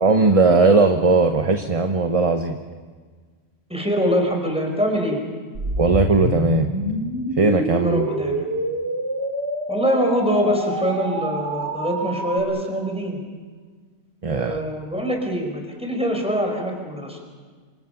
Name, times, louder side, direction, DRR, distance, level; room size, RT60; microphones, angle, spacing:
voice 1, 0.0-2.6 5.8-6.7 7.4-8.0 14.2-14.6, right 3 dB, 35° right, 6 dB, 1.0 m, -18 dB
voice 2, 3.7-5.2 7.8-8.4 9.7-13.2 14.2-17.2, equal, 5° right, 2 dB, 5.0 m, -24 dB
sound 1, 5.5-12.4, right 1 dB, 80° right, 3.9 m, -27 dB
27.5 x 26.0 x 5.9 m, 1.5 s
omnidirectional pair, 1.1 m